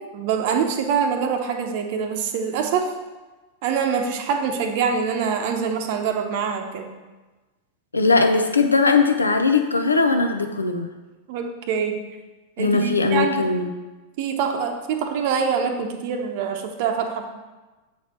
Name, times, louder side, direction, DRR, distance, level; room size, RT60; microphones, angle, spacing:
voice 1, 0.0-2.9 3.6-6.9 11.3-12.0 12.6-13.5 14.2-17.3, right 6 dB, 50° right, 4 dB, 0.8 m, -24 dB
voice 2, 7.9-10.9 12.6-13.7, left 4 dB, 80° left, 6 dB, 0.6 m, -19 dB
7.6 x 4.3 x 4.3 m, 1.2 s
figure-of-eight pair, 90°, 0 cm